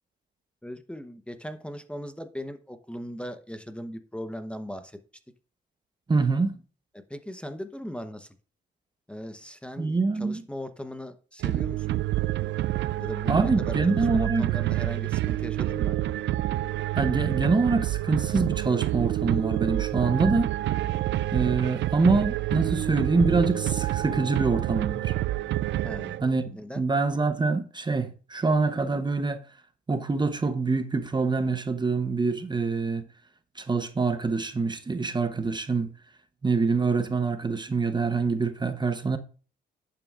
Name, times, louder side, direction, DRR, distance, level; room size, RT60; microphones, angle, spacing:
voice 1, 0.6-5.0 7.1-8.4 9.1-12.0 13.0-16.0 25.8-26.2 26.5-26.8, equal, 5° left, 0.9 m, -38 dB
voice 2, 6.1-6.6 9.8-10.4 13.3-14.5 16.9-20.5 21.3-25.1 26.2-29.4 29.9-33.1 33.6-35.9 36.4-39.2, right 4 dB, 20° right, 0.9 m, -25 dB
sound 1, 11.4-26.5, right 15 dB, 65° right, 0.4 m, -28 dB
10.5 x 8.8 x 2.5 m
cardioid pair, 90°, 20 cm